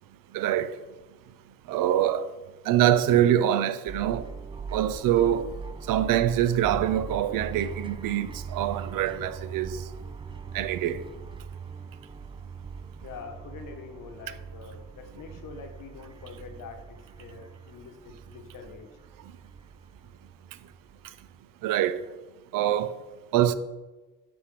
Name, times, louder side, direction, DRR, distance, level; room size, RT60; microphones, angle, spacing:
voice 1, 0.3-0.8 1.7-2.3 2.7-4.3 4.7-5.5 5.9-9.8 10.5-11.0 21.6-22.0 22.5-22.9 23.3-23.5, right 11 dB, 90° right, 0.6 m, -24 dB
sound 1, 3.9-21.4, right 5 dB, 15° right, 0.3 m, -41 dB
voice 2, 13.0-18.9, left 5 dB, 80° left, 1.2 m, -45 dB
6.2 x 6.2 x 4.8 m
cardioid pair, 85°, 32 cm